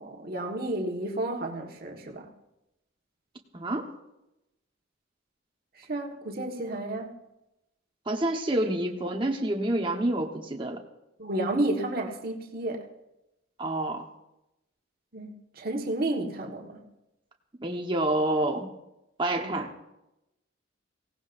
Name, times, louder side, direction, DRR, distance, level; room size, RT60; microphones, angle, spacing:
voice 1, 0.0-2.3 5.9-7.2 11.2-12.9 15.1-16.8 19.4-19.5, right 1 dB, 50° right, 1 dB, 1.6 m, -31 dB
voice 2, 3.5-3.9 8.1-10.8 13.6-14.0 17.6-18.7 19.2-19.7, right 1 dB, 25° right, 2 dB, 1.2 m, -28 dB
23.5 x 17.5 x 2.6 m, 0.91 s
head